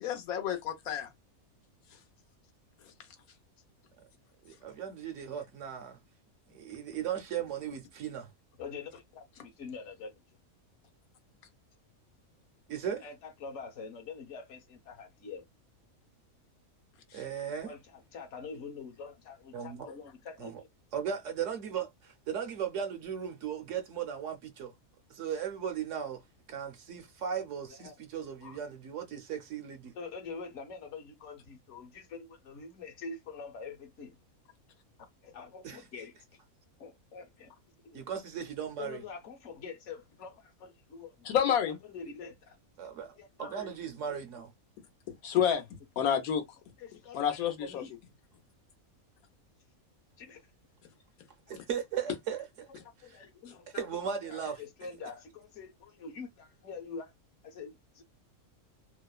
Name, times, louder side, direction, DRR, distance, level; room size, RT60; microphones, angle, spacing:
voice 1, 0.0-1.1 17.1-17.2 41.3-41.8 45.1-45.6 46.0-46.4 47.1-47.8, left 8 dB, 85° left, 1.2 m, -29 dB
voice 2, 4.4-6.0 6.5-8.3 12.7-13.1 17.1-17.7 19.5-19.9 20.4-20.6 20.9-24.7 25.1-26.2 26.5-29.9 35.6-35.8 37.9-39.0 42.8-44.5 51.5-52.7 53.0-53.2 53.7-54.6, right 8 dB, 70° right, 0.8 m, -37 dB
voice 3, 8.6-10.2 12.9-15.4 17.6-20.7 27.8-27.9 28.4-28.6 29.9-34.2 35.2-36.1 36.8-37.6 37.8-38.0 38.8-41.3 41.9-42.6 43.2-43.7 46.8-47.9 50.2-50.4 51.5-51.6 52.8-53.9 54.2-57.1 57.4-58.0, left 5 dB, 60° left, 1.0 m, -45 dB
2.9 x 2.0 x 2.2 m
omnidirectional pair, 1.5 m